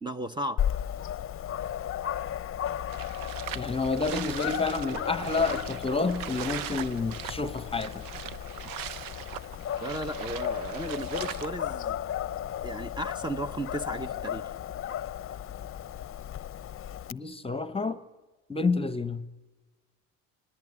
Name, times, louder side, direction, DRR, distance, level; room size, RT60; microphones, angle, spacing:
voice 1, 0.0-0.6 9.8-12.0 12.6-14.5, right 1 dB, 15° right, 0.9 m, -35 dB
Dog, 0.6-17.1, left 10 dB, 40° left, 0.7 m, -35 dB
sound 1, 2.9-11.5, right 12 dB, 75° right, 0.8 m, -40 dB
voice 2, 3.5-8.0 17.1-18.0 18.5-19.2, left 4 dB, 15° left, 1.0 m, -29 dB
26.0 x 19.0 x 9.9 m
supercardioid pair, 85°, 34 cm